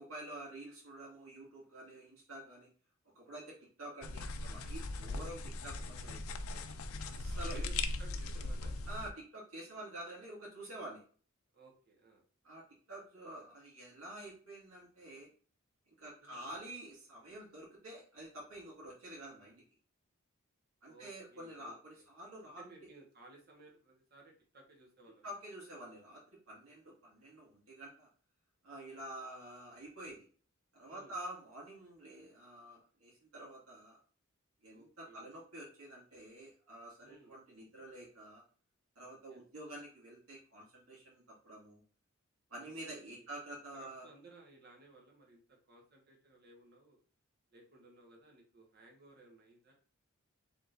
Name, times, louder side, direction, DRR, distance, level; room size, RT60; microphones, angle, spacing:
voice 1, 0.0-2.7 3.1-6.3 7.1-7.6 8.9-11.0 12.4-15.3 16.0-19.6 20.8-22.6 25.2-26.2 26.5-28.1 28.6-30.3 30.7-34.0 34.6-38.4 39.0-41.8 42.5-44.1, right 1 dB, 90° right, -5 dB, 2.0 m, -48 dB
sound 1, 4.0-9.1, left 2 dB, 85° left, 0.5 m, -39 dB
voice 2, 4.9-5.2 6.5-6.6 7.5-8.8 11.5-12.2 16.2-16.4 20.8-22.1 22.4-25.3 30.9-31.1 34.7-35.2 37.0-37.4 39.3-39.4 42.7-43.3 43.7-47.0 47.5-49.7, right 2 dB, 50° right, 0 dB, 1.3 m, -59 dB
4.6 x 3.7 x 2.5 m, 0.40 s
head